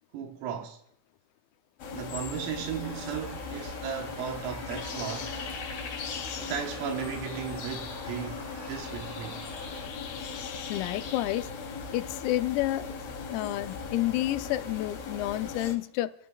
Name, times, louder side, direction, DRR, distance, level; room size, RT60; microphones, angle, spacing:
voice 1, 0.1-0.8 1.9-5.3 6.4-8.4 8.7-9.4, right 8 dB, 80° right, 3.7 m, -35 dB
sound 1, 1.8-15.7, left 5 dB, 55° left, 3.7 m, -38 dB
sound 2, 2.8-9.9, right 2 dB, 30° right, 2.9 m, -47 dB
voice 2, 10.7-11.5 11.9-12.9 13.3-16.1, left 15 dB, 90° left, 3.4 m, -30 dB
27.5 x 14.5 x 2.3 m
omnidirectional pair, 6.0 m